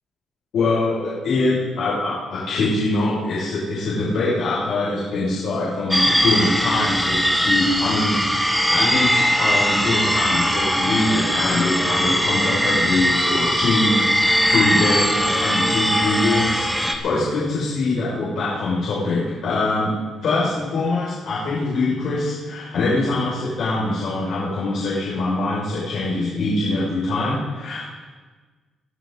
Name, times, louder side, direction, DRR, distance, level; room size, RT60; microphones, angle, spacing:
voice 1, 0.5-27.8, left 2 dB, 75° left, -8 dB, 5.6 m, -23 dB
sound 1, 5.9-17.0, equal, ahead, 1.8 m, -20 dB
23.5 x 12.0 x 3.9 m, 1.4 s
cardioid pair, 90°, 0 cm